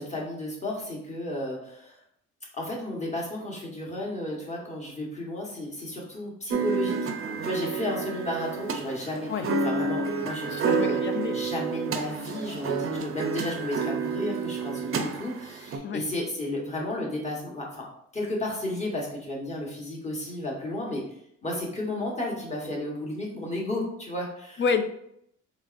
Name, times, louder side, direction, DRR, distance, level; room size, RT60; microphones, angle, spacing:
voice 1, 0.0-2.0 2.5-7.1 7.4-11.0 11.3-17.8 18.1-21.0 21.4-24.6, left 1 dB, 25° left, -2 dB, 1.2 m, -33 dB
sound 1, 6.5-15.8, right 5 dB, 45° right, 0.5 m, -30 dB
voice 2, 10.5-11.4 15.8-16.0 24.6-24.8, left 6 dB, 40° left, 8 dB, 0.4 m, -28 dB
3.8 x 3.0 x 2.5 m, 0.73 s
cardioid pair, 90°, 30 cm